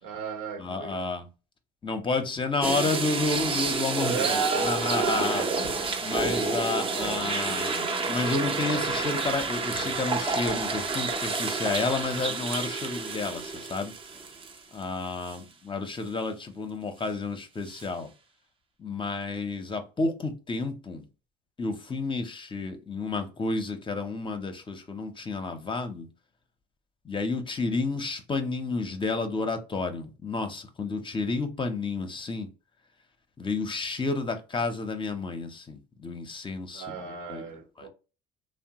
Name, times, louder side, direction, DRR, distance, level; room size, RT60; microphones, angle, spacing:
voice 1, 0.0-1.1 4.0-5.8 6.7-7.3 36.7-37.9, right 6 dB, 75° right, 1.0 m, -33 dB
voice 2, 0.6-1.3 1.8-5.5 6.0-13.9 14.7-18.1 18.8-21.0 21.6-26.1 27.0-32.5 33.4-37.4 37.8-37.9, left 3 dB, 25° left, 0.6 m, -31 dB
sound 1, 2.6-14.8 15.3-15.4 17.7-17.8, right 4 dB, 25° right, 0.6 m, -29 dB
2.8 x 2.1 x 2.8 m
supercardioid pair, 90°, 20 cm